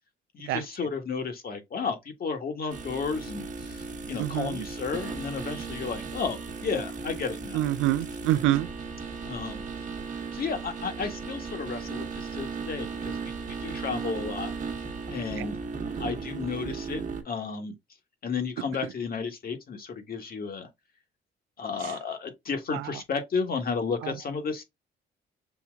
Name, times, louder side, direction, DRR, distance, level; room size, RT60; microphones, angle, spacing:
voice 1, 0.3-7.7 9.2-9.6 10.3-13.3 13.6-14.5 15.1-15.6 16.0-17.7 18.2-20.7 21.6-24.6, left 5 dB, 50° left, 1.5 m, -33 dB
sound 1, 2.7-17.2, right 5 dB, 40° right, 1.2 m, -36 dB
voice 2, 4.2-4.7 7.5-8.7 15.4-15.5 21.8-21.9 22.7-22.9 24.0-24.1, right 15 dB, 90° right, 0.4 m, -27 dB
6.9 x 2.8 x 2.4 m
cardioid pair, 90°, 20 cm